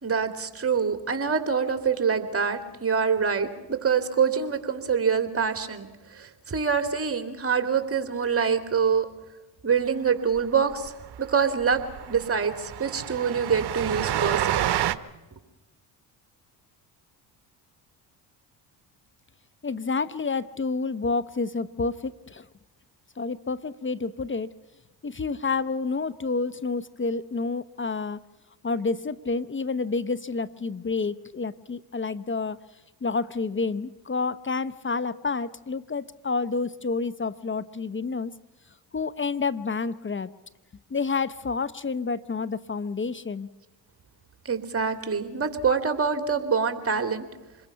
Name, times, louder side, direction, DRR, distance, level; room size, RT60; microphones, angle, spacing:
voice 1, 0.0-5.9 6.1-9.1 9.6-10.9 11.2-11.8 12.1-14.4 44.4-47.3, right 6 dB, 30° right, 7 dB, 2.9 m, -25 dB
Train, 10.4-10.5 10.7-10.9 11.1-11.2 11.6-14.9, right 12 dB, 50° right, 1.1 m, -29 dB
voice 2, 19.6-22.4 23.2-24.5 25.0-28.2 28.6-32.6 33.0-38.3 38.9-40.3 40.9-43.5, left 4 dB, 25° left, 15 dB, 0.9 m, -29 dB
26.5 x 21.0 x 5.8 m, 1.2 s
hypercardioid pair, 60°, 49 cm